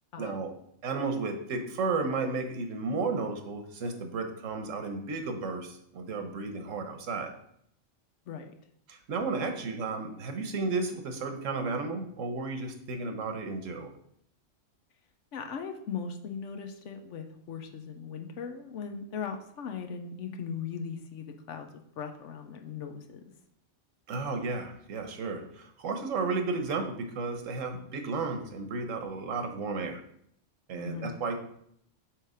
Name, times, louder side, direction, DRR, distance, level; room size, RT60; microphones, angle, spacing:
voice 1, 0.2-0.5 0.8-7.3 8.9-13.9 24.1-30.0 30.7-31.3, right 3 dB, 80° right, 5 dB, 1.3 m, -33 dB
voice 2, 15.3-23.2 30.8-31.1, left 6 dB, 75° left, 5 dB, 1.0 m, -39 dB
7.2 x 3.3 x 4.9 m, 0.70 s
omnidirectional pair, 1.3 m